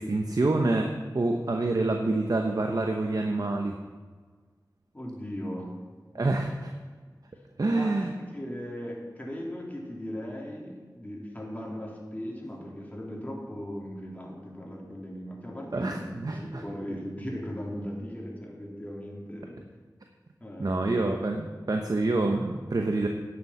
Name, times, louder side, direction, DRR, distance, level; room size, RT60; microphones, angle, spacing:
voice 1, 0.0-3.8 6.1-6.7 7.6-8.1 15.7-16.6 20.6-23.1, right 2 dB, 60° right, 3 dB, 0.9 m, -27 dB
voice 2, 4.9-5.7 6.1-6.4 7.7-19.6 20.4-21.1, equal, 20° left, -2 dB, 3.3 m, -38 dB
10.5 x 7.1 x 7.3 m, 1.5 s
wide cardioid pair, 50°, 7 cm